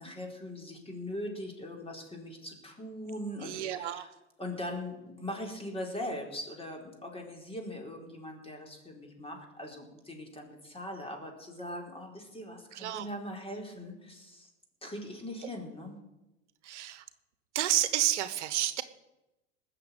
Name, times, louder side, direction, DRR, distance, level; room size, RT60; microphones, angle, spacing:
voice 1, 0.0-4.1 4.4-14.5 14.8-16.0, left 1 dB, 15° left, 2 dB, 4.5 m, -41 dB
voice 2, 3.4-4.1 12.7-13.1 16.6-17.0 17.5-18.8, right 13 dB, 75° right, 13 dB, 1.1 m, -30 dB
19.5 x 7.1 x 9.0 m, 0.96 s
hypercardioid pair, 90°, 35 cm